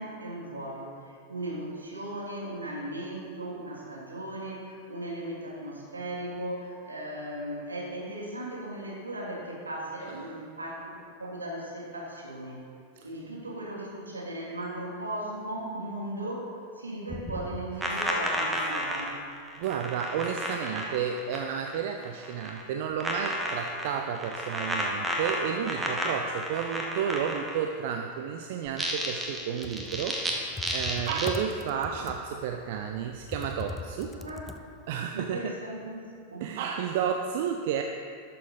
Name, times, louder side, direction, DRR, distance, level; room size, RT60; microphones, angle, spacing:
voice 1, 0.0-12.6 13.0-19.2 34.2-34.5 35.1-36.0 36.3-36.4, right 1 dB, 75° right, -3 dB, 1.8 m, -37 dB
sound 1, 17.1-21.8 22.0-22.6 23.0-27.7 28.7-30.3 30.6-31.3, equal, 10° right, 1.2 m, -32 dB
voice 2, 19.6-34.2 34.9-35.4 36.4-37.8, right 8 dB, 50° right, 4 dB, 0.5 m, -32 dB
Computer keyboard, 29.4-35.0, left 4 dB, 15° left, 0.4 m, -41 dB
12.0 x 6.8 x 3.9 m, 2.3 s
figure-of-eight pair, 90°, 0 cm